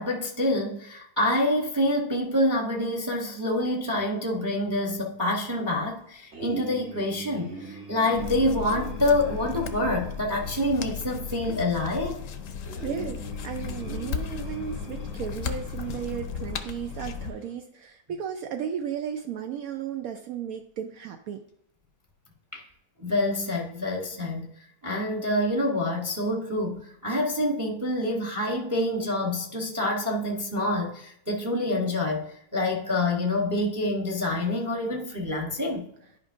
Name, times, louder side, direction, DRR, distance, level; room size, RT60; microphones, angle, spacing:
voice 1, 0.0-12.2 22.5-22.6 23.0-24.5 24.8-35.9, left 1 dB, 15° right, 0 dB, 0.7 m, -27 dB
sound 1, 6.3-17.5, right 2 dB, 50° right, 1.7 m, -43 dB
sound 2, 8.1-17.3, left 6 dB, 65° left, 0.9 m, -35 dB
voice 2, 12.8-21.4, right 8 dB, 75° right, 5 dB, 1.0 m, -34 dB
10.5 x 5.1 x 2.6 m, 0.75 s
omnidirectional pair, 1.6 m